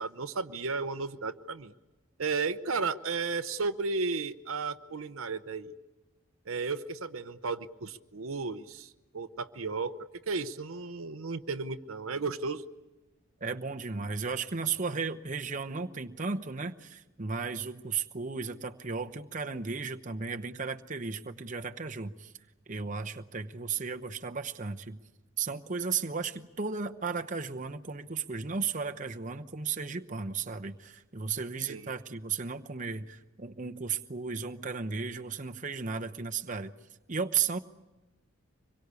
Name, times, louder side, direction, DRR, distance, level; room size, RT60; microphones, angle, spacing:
voice 1, 0.0-1.7 2.2-5.7 6.5-10.0 10.3-12.6 31.7-31.9, right 4 dB, 75° right, 10 dB, 0.8 m, -34 dB
voice 2, 13.4-22.3 22.7-25.0 25.4-36.7 37.1-37.6, right 5 dB, 35° right, 5 dB, 0.9 m, -35 dB
25.5 x 22.5 x 8.3 m, 1.1 s
head